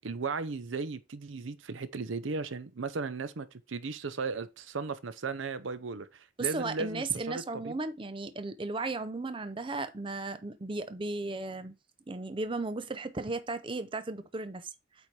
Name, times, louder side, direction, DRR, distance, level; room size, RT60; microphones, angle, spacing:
voice 1, 0.0-7.8, right 4 dB, 75° right, 0.7 m, -36 dB
voice 2, 6.4-11.8 12.1-14.7, right 3 dB, 25° right, 0.5 m, -35 dB
8.3 x 4.4 x 3.2 m
head